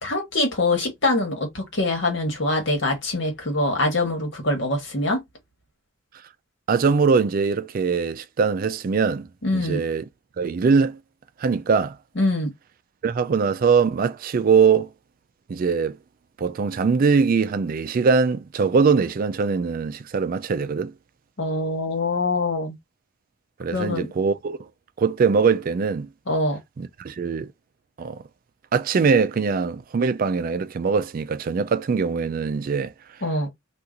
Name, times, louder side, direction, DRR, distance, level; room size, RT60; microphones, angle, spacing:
voice 1, 0.0-5.2 9.4-9.8 12.2-12.5 21.4-22.8 23.7-24.1 26.3-26.6 33.2-33.5, left 2 dB, 60° left, 1.4 m, -24 dB
voice 2, 6.7-9.3 9.5-10.0 10.4-11.0 11.4-12.0 13.0-14.9 15.5-16.0 16.4-20.9 23.6-24.6 25.0-26.1 26.8-27.5 28.0-28.2 28.7-32.9, right 5 dB, 45° right, 0.3 m, -22 dB
2.8 x 2.4 x 3.6 m
head